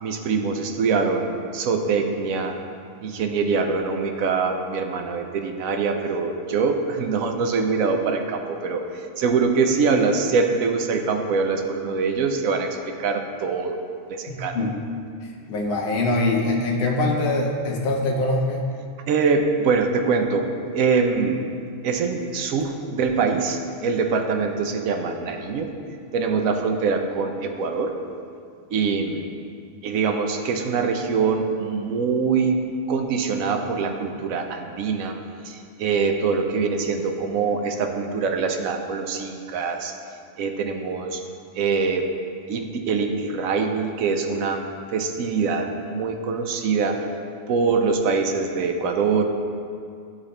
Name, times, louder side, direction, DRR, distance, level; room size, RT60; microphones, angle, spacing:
voice 1, 0.0-2.6 3.0-8.8 9.2-13.8 14.1-14.6 19.1-21.5 21.8-25.7 26.1-27.9 28.7-29.3 29.8-32.6 32.9-35.2 35.4-39.9 40.4-41.2 41.5-42.0 42.5-47.0 47.5-49.2, right 5 dB, 90° right, 4 dB, 1.1 m, -24 dB
voice 2, 14.3-14.8 15.2-18.6, left 2 dB, 55° left, -1 dB, 1.1 m, -23 dB
11.0 x 4.1 x 3.2 m, 2.3 s
omnidirectional pair, 1.4 m